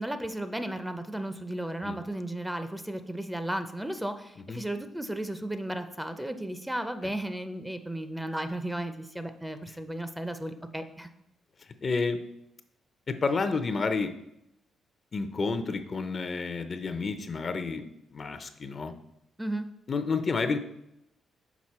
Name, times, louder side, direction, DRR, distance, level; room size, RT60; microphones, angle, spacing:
voice 1, 0.0-11.1 19.4-19.6, right 1 dB, 5° right, 9 dB, 0.6 m, -34 dB
voice 2, 11.8-12.2 13.1-14.1 15.1-18.9 19.9-20.6, left 4 dB, 45° left, 9 dB, 0.6 m, -30 dB
6.0 x 4.3 x 4.2 m, 0.80 s
cardioid pair, 65°, 0 cm